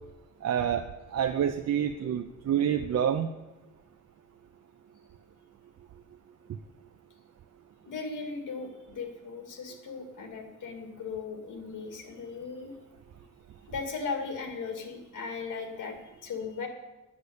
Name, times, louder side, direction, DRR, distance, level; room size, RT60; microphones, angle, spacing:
voice 1, 0.4-0.9 1.1-3.3, right 9 dB, 55° right, 6 dB, 0.7 m, -27 dB
voice 2, 7.9-12.7 13.7-16.7, left 4 dB, 80° left, 4 dB, 2.4 m, -37 dB
10.0 x 8.2 x 8.1 m, 1.1 s
cardioid pair, 120°, 31 cm